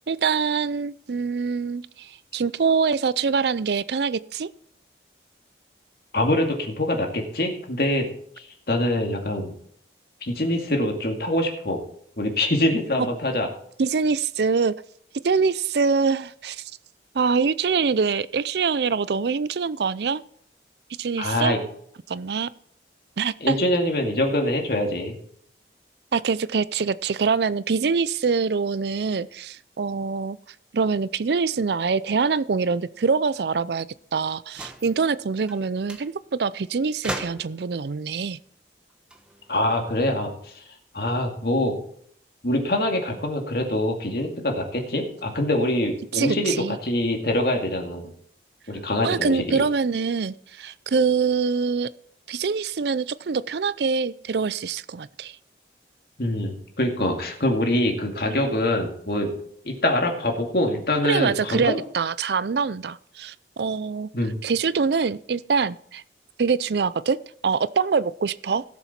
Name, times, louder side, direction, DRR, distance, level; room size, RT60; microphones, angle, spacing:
voice 1, 0.1-4.5 13.8-14.7 15.2-16.6 17.1-20.2 21.0-21.5 22.1-22.5 23.2-23.6 26.1-30.4 30.7-33.9 34.1-38.4 46.1-46.8 49.0-51.9 52.3-55.4 58.3-58.4 61.0-64.1 64.4-66.0 66.4-67.2 67.4-68.6, right 5 dB, 70° right, 18 dB, 0.5 m, -24 dB
voice 2, 6.1-8.1 8.4-9.5 10.2-11.8 12.2-13.5 21.2-21.6 23.4-25.1 39.5-40.6 40.9-41.7 42.4-48.1 48.7-49.6 56.2-59.3 59.6-61.8 64.1-64.4, left 1 dB, 60° left, 2 dB, 2.3 m, -24 dB
sound 1, 34.5-35.0 35.5-35.6 35.9-36.1 37.0-37.7 38.9-40.0, right 1 dB, 5° right, 1.0 m, -36 dB
16.5 x 7.1 x 4.4 m, 0.65 s
head